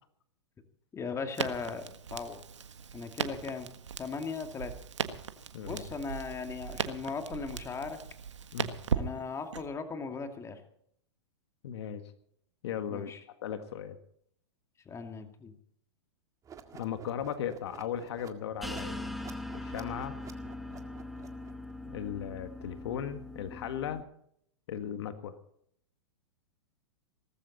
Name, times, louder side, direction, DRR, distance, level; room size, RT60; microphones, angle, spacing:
voice 1, 0.9-2.4 2.9-3.7 4.0-4.7 5.7-8.0 8.9-10.6 12.9-13.2 14.9-15.6, left 5 dB, 20° left, 6 dB, 2.3 m, -38 dB
Crackle, 1.3-9.6, right 7 dB, 85° right, 1.6 m, -38 dB
voice 2, 11.6-12.0 12.6-13.1 13.4-14.0 16.8-19.1 19.5-20.2 20.7-20.8 21.9-24.0 24.7-25.4, left 9 dB, 65° left, 9 dB, 1.7 m, -37 dB
sound 1, 16.4-21.7, right 7 dB, 20° right, 1.9 m, -51 dB
sound 2, 18.6-24.0, left 2 dB, ahead, 1.5 m, -41 dB
18.5 x 14.5 x 4.2 m, 0.68 s
hypercardioid pair, 115°, 15 cm